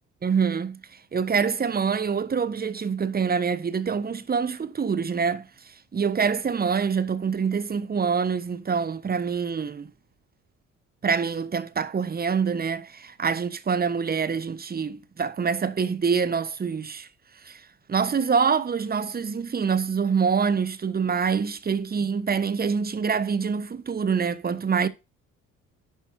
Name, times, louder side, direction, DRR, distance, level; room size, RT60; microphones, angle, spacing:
voice 1, 0.2-0.8 1.1-9.9 11.0-17.1 17.4-17.6 17.9-24.9, right 6 dB, 25° right, 1.1 m, -25 dB
11.0 x 8.3 x 2.7 m
figure-of-eight pair, 45°, 41 cm